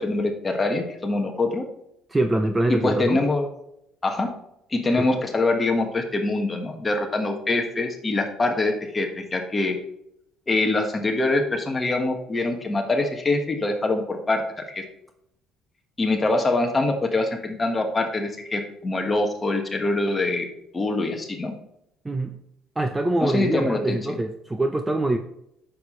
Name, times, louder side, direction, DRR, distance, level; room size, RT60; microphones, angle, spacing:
voice 1, 0.0-1.7 2.7-3.5 4.0-4.3 4.7-9.8 10.5-14.4 14.7-14.8 16.0-20.5 20.7-21.5 23.2-24.0, left 2 dB, 20° left, 3 dB, 1.4 m, -24 dB
voice 2, 2.1-3.2 5.0-5.1 22.0-22.4 22.8-25.2, right 2 dB, 10° right, 6 dB, 0.6 m, -24 dB
9.4 x 6.7 x 3.2 m, 0.79 s
cardioid pair, 145°, 0 cm